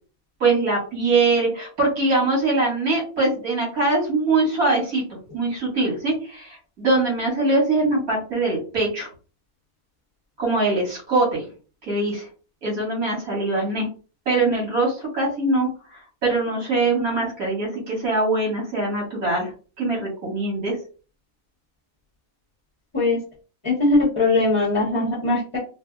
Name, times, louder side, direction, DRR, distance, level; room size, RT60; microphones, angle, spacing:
voice 1, 0.4-5.0 5.3-9.1 10.4-11.5 11.9-12.3 12.6-13.9 14.3-19.5 19.8-20.8, right 2 dB, 90° right, -3 dB, 2.3 m, -22 dB
voice 2, 23.6-25.6, left 2 dB, 25° left, -6 dB, 0.9 m, -20 dB
4.2 x 2.5 x 2.3 m, 0.37 s
omnidirectional pair, 1.5 m